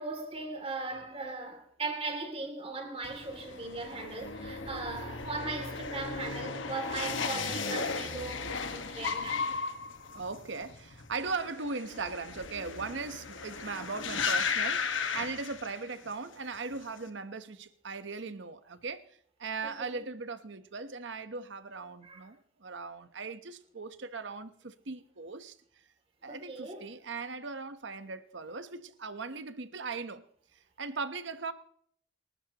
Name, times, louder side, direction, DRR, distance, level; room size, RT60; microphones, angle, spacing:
voice 1, 0.0-9.4 19.8-20.0 22.0-22.2 26.3-26.8, right 3 dB, 30° right, 2.8 m, -38 dB
sound 1, 3.0-16.1 16.4-17.0, left 5 dB, 85° left, 1.5 m, -36 dB
voice 2, 10.1-19.1 19.4-25.6 26.2-30.2 30.5-31.5, right 4 dB, 70° right, 1.0 m, -39 dB
29.0 x 13.0 x 3.0 m
head